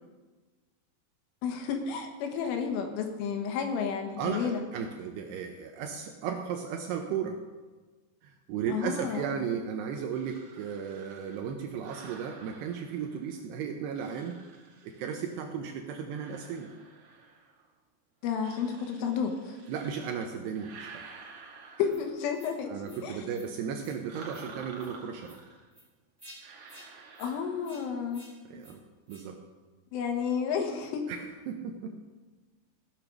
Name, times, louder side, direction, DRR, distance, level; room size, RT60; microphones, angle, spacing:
voice 1, 1.4-4.6 8.7-9.3 18.2-19.6 21.8-23.2 27.2-28.3 29.9-31.1, left 6 dB, 85° left, 4 dB, 3.8 m, -31 dB
voice 2, 4.2-7.4 8.2-14.4 14.8-16.7 19.7-21.0 22.7-25.4 28.4-29.4 31.1-32.0, right 7 dB, 80° right, 4 dB, 2.5 m, -35 dB
sound 1, 10.1-13.5 13.9-15.5 16.0-17.7 18.3-20.2 20.5-22.4 24.1-25.7 26.4-28.0, right 4 dB, 60° right, 2.1 m, -51 dB
sound 2, 21.9-22.0 22.3-22.5 22.8-23.0 23.3-23.5 23.8-24.0 24.3-24.5 24.8-24.9 25.2-25.4 25.7-25.9 26.2-26.4 26.7-26.9 27.1-27.3 27.6-27.8 28.1-28.3 28.6-28.7 29.1-29.2, equal, 5° right, 1.8 m, -53 dB
16.0 x 6.7 x 6.0 m, 1.3 s
omnidirectional pair, 5.5 m